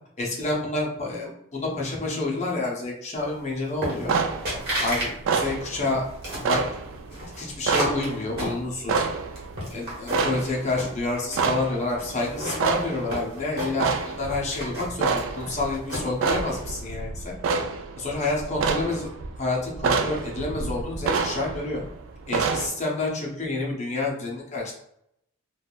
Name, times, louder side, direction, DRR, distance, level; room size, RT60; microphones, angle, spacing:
voice 1, 0.2-4.1 4.8-6.6 7.4-9.1 9.7-17.3 18.0-19.1 19.4-21.8 22.3-24.7, left 2 dB, 35° left, -3 dB, 0.7 m, -29 dB
sound 1, 3.8-4.2 4.4-5.1 5.4-6.5 7.1-9.0 9.4-10.4 10.7-11.5 12.0-14.0 14.3-16.3, right 1 dB, 50° right, 1.1 m, -32 dB
sound 2, 4.0-22.7, right 4 dB, 70° right, 0.3 m, -28 dB
3.5 x 2.3 x 2.3 m, 0.75 s
head